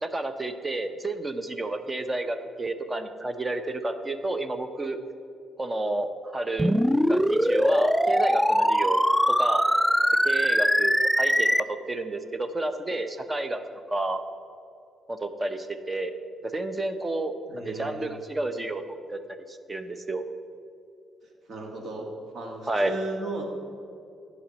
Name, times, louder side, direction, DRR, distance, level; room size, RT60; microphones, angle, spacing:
voice 1, 0.0-5.0 5.6-6.8 7.1-9.6 10.2-13.6 13.9-14.2 15.1-16.1 16.4-17.3 17.6-18.8 19.1-19.2 19.5-20.2 22.7-23.0, right 2 dB, 20° right, 9 dB, 0.7 m, -30 dB
sound 1, 6.6-11.6, equal, ahead, 0.3 m, -22 dB
voice 2, 17.5-18.2 21.5-22.1 22.3-23.4, right 2 dB, 55° right, 1 dB, 1.6 m, -35 dB
10.0 x 4.2 x 7.4 m, 2.5 s
cardioid pair, 90°, 0 cm